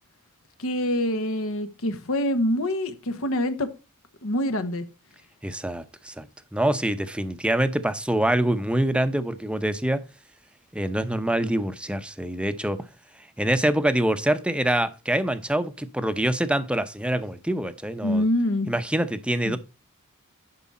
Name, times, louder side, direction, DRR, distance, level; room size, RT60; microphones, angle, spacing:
voice 1, 0.6-3.7 4.2-4.8 18.0-18.7 19.4-19.6, left 1 dB, 70° left, 1.1 m, -25 dB
voice 2, 5.4-6.3 6.5-10.0 10.7-12.8 13.4-18.2 18.7-19.6, right 1 dB, 5° right, 0.7 m, -25 dB
11.0 x 4.8 x 4.2 m
head